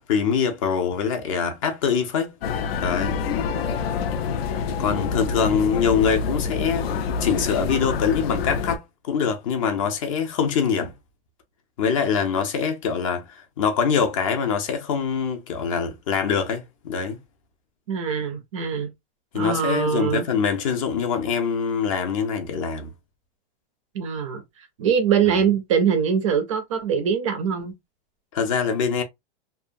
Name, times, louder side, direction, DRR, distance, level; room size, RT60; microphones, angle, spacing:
voice 1, 0.0-2.3 2.8-3.2 4.5-6.9 7.2-10.9 11.8-13.3 13.6-17.2 19.3-22.9 28.3-29.0, left 6 dB, 35° left, 0.5 m, -24 dB
sound 1, 2.4-8.8, left 5 dB, 80° left, 0.5 m, -26 dB
voice 2, 17.9-18.9 19.3-20.3 23.9-24.4 24.8-27.7, right 7 dB, 35° right, 0.4 m, -23 dB
2.7 x 2.2 x 2.5 m
supercardioid pair, 175°, 29 cm